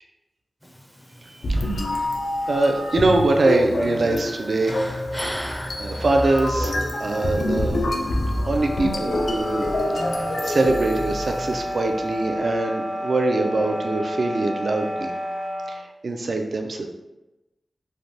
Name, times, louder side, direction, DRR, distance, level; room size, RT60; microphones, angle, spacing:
sound 1, 0.6-11.6, equal, 5° left, 0.4 m, -37 dB
voice 1, 1.2-2.1 2.5-4.8 5.8-6.7 7.0-7.8 8.4-9.6 10.2-15.1 15.7-16.9, right 2 dB, 70° right, 4 dB, 0.3 m, -23 dB
sound 2, 1.4-11.7, left 1 dB, 80° left, 0.4 m, -27 dB
sound 3, 8.3-15.8, equal, 85° right, 0.9 m, -30 dB
3.2 x 2.1 x 2.6 m, 1.0 s
wide cardioid pair, 80°, 0 cm